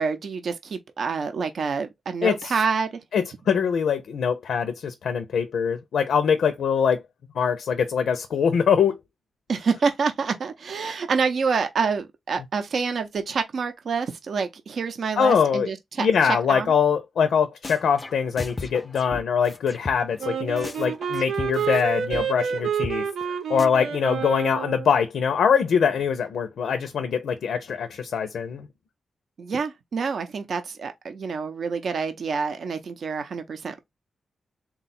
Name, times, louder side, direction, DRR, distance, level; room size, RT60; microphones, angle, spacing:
voice 1, 0.0-2.9 9.5-16.1 16.5-16.7 29.4-33.8, right 5 dB, 60° right, 0.6 m, -27 dB
voice 2, 2.2-2.6 3.1-7.0 7.3-9.0 15.2-15.7 16.0-28.7, left 7 dB, 80° left, 0.5 m, -23 dB
sound 1, 17.3-17.4 17.6-20.2 20.6-21.8 22.1-22.2 22.5-22.6 22.8-22.9 23.2-23.3 23.6-23.7, left 3 dB, 25° left, 0.4 m, -36 dB
Wind instrument woodwind instrument, 20.2-24.9, right 7 dB, 90° right, 1.0 m, -28 dB
3.8 x 2.3 x 4.1 m
wide cardioid pair, 120°, 0 cm